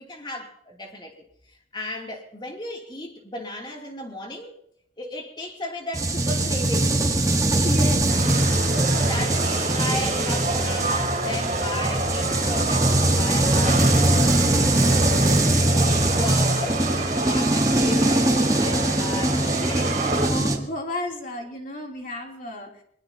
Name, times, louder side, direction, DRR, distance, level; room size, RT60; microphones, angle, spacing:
voice 1, 0.0-4.6 5.0-7.0 8.7-14.4 14.8-19.8, left 1 dB, 25° left, 2.8 m, -35 dB
sound 1, 5.9-20.6, right 1 dB, 20° right, 1.4 m, -22 dB
voice 2, 7.4-8.7 19.4-19.9 20.2-22.8, left 1 dB, 45° left, 3.1 m, -34 dB
sound 2, 8.1-20.3, right 2 dB, 40° right, 3.9 m, -28 dB
22.0 x 21.0 x 2.9 m
head